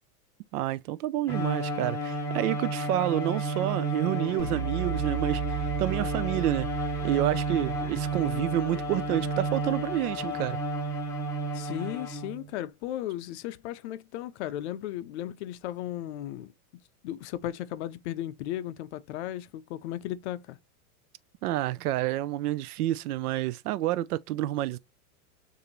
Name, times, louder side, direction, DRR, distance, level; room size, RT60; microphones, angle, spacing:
voice 1, 0.5-10.6 21.4-24.8, right 14 dB, 85° right, 0.5 m, -29 dB
Bowed string instrument, 1.3-12.5, right 1 dB, 5° left, 1.2 m, -32 dB
sound 1, 4.4-10.4, right 9 dB, 30° left, 2.4 m, -36 dB
voice 2, 11.5-16.5 17.0-20.6, left 13 dB, 50° left, 0.5 m, -35 dB
6.7 x 2.7 x 2.9 m
supercardioid pair, 150°, 44 cm